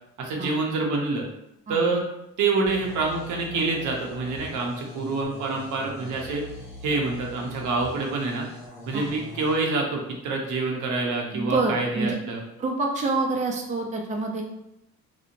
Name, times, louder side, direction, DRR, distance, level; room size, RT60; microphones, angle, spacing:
voice 1, 0.2-1.2 1.7-2.0 2.4-6.4 6.8-8.5 8.9-12.4, right 3 dB, 80° right, 0 dB, 0.7 m, -26 dB
sound 1, 2.7-9.5, equal, 10° left, 1.1 m, -42 dB
voice 2, 11.3-12.1 12.6-14.4, right 3 dB, 25° right, 1 dB, 0.4 m, -27 dB
3.0 x 2.1 x 2.5 m, 0.84 s
cardioid pair, 90°, 30 cm